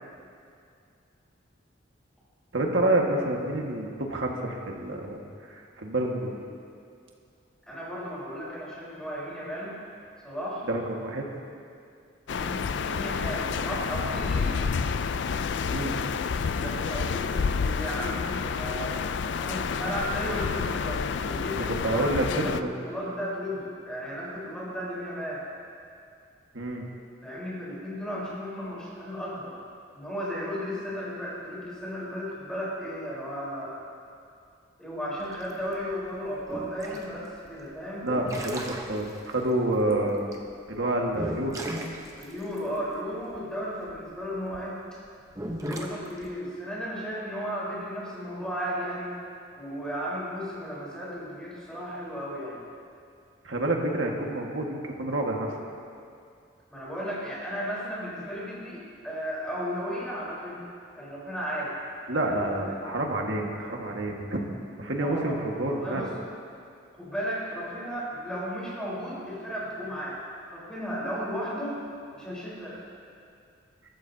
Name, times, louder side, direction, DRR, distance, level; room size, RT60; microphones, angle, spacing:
voice 1, 2.5-5.2 5.5-6.4 10.7-11.3 15.7-16.0 21.8-22.7 26.5-26.8 38.0-40.2 40.7-41.6 53.4-55.5 62.1-64.4 64.8-66.0, right 1 dB, 75° right, 0 dB, 1.8 m, -28 dB
voice 2, 7.7-9.8 10.2-10.7 12.3-14.6 16.3-19.0 19.3-25.5 27.2-29.5 29.9-33.8 34.8-38.1 42.2-44.8 45.6-49.2 49.6-52.6 56.7-61.7 62.2-62.8 64.9-65.4 65.7-66.1 67.0-70.2 70.5-71.8 72.1-72.9, equal, 5° left, -7 dB, 4.1 m, -35 dB
sound 1, 12.3-22.6, left 5 dB, 65° left, 0.4 m, -29 dB
sound 2, 35.2-44.6 45.3-46.3, right 1 dB, 15° right, 0.9 m, -37 dB
22.5 x 13.5 x 2.8 m, 2.4 s
head